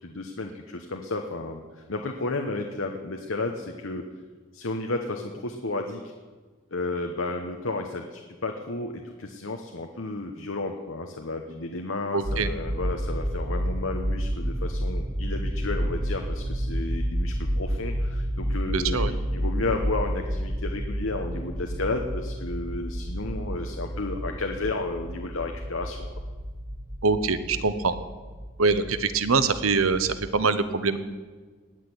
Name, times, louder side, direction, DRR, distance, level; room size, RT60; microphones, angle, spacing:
voice 1, 0.0-4.0 4.5-6.1 6.7-26.1, left 2 dB, 70° left, 4 dB, 1.1 m, -32 dB
voice 2, 12.1-12.5 18.7-19.1 27.0-28.0 28.6-31.0, right 4 dB, 80° right, 12 dB, 1.0 m, -24 dB
sound 1, 12.2-30.3, equal, 40° right, 3.4 m, -30 dB
18.5 x 6.7 x 9.8 m, 1.4 s
head